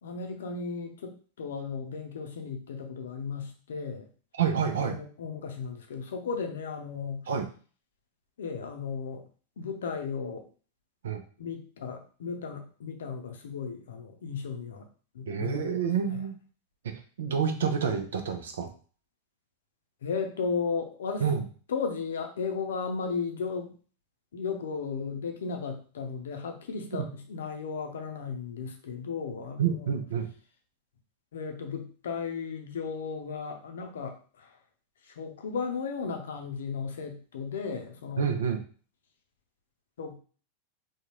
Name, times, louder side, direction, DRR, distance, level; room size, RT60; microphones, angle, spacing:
voice 1, 0.0-4.1 4.8-7.3 8.4-9.2 9.6-10.4 11.4-14.9 15.1-16.2 20.0-21.2 21.7-23.7 24.3-30.0 31.3-34.6 35.0-38.3 40.0-40.2, left 5 dB, 60° left, 4 dB, 0.6 m, -35 dB
voice 2, 4.4-5.0 7.3-7.5 11.0-11.2 15.3-16.4 17.2-18.7 21.2-21.4 29.6-30.3 38.2-38.6, right 7 dB, 60° right, 7 dB, 0.5 m, -28 dB
3.6 x 2.3 x 3.0 m, 0.40 s
figure-of-eight pair, 90°, 0 cm